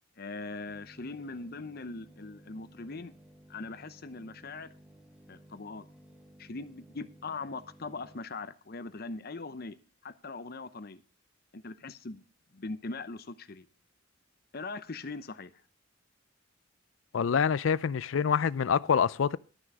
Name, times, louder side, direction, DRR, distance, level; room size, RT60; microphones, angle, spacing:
voice 1, 0.2-3.1 3.5-4.7 5.3-5.8 6.4-9.8 10.0-11.0 11.5-12.2 12.5-13.7 14.5-15.5, left 3 dB, 50° left, 0.8 m, -41 dB
sound 1, 0.7-8.2, right 1 dB, 5° right, 1.1 m, -56 dB
voice 2, 17.1-19.4, left 7 dB, 80° left, 0.4 m, -26 dB
12.0 x 6.2 x 6.2 m
head